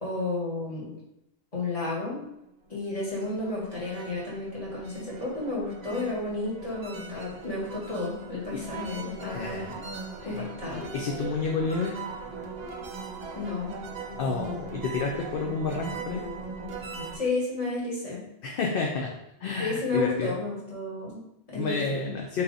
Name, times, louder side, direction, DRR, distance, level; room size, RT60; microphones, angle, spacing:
voice 1, 0.0-0.9 1.5-2.2 2.7-9.8 10.2-10.9 13.3-13.7 17.1-18.2 19.6-22.0, left 2 dB, 35° left, -6 dB, 1.5 m, -32 dB
sound 1, 2.7-17.2, right 3 dB, 45° right, 0.7 m, -40 dB
voice 2, 9.2-9.7 10.2-10.4 10.9-12.0 14.2-16.3 18.4-19.1 19.4-20.3 21.5-22.4, left 4 dB, 65° left, 0 dB, 0.7 m, -30 dB
3.8 x 2.8 x 3.9 m, 0.83 s
omnidirectional pair, 1.1 m